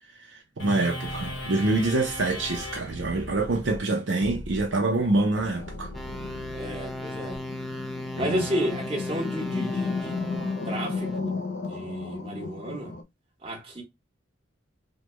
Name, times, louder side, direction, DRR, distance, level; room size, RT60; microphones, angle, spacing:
sound 1, 0.6-7.4, left 1 dB, 75° left, 1.2 m, -38 dB
voice 1, 0.6-5.9 8.2-8.4, right 2 dB, 70° right, 0.6 m, -26 dB
sound 2, 5.0-13.0, left 4 dB, 55° left, 0.5 m, -34 dB
sound 3, 5.9-11.2, left 1 dB, ahead, 0.3 m, -37 dB
voice 2, 6.5-7.4 8.2-10.1 10.7-11.3 11.7-12.9 13.4-13.8, equal, 25° right, 1.2 m, -32 dB
3.1 x 2.2 x 3.1 m
head